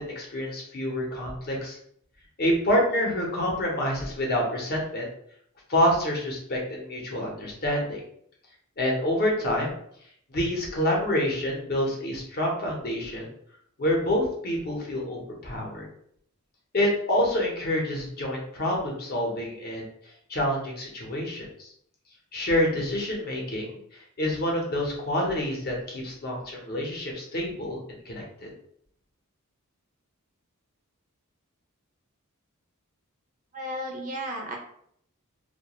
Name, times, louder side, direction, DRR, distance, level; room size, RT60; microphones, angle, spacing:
voice 1, 0.0-1.8 2.4-5.1 5.7-8.0 8.8-9.8 10.3-13.3 13.8-15.9 16.7-19.8 20.3-21.5 22.3-27.8 28.0-28.5, left 1 dB, 45° left, -1 dB, 0.7 m, -27 dB
voice 2, 33.5-34.6, equal, 35° right, 1 dB, 0.5 m, -33 dB
2.3 x 2.3 x 2.9 m, 0.68 s
head